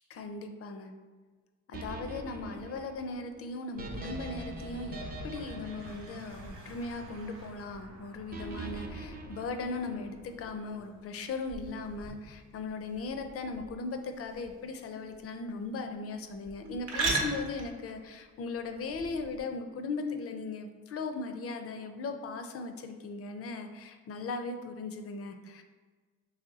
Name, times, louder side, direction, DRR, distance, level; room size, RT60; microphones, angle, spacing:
voice 1, 0.1-0.9 1.7-25.6, left 3 dB, 50° left, 6 dB, 0.4 m, -38 dB
sound 1, 1.7-7.0 8.3-10.2, right 1 dB, 30° right, 0.6 m, -43 dB
sound 2, 3.7-14.8, right 1 dB, 90° right, 0.8 m, -52 dB
sound 3, 4.3-19.4, right 3 dB, 60° right, 0.8 m, -41 dB
3.0 x 2.7 x 3.9 m, 1.4 s
cardioid pair, 90°, 30 cm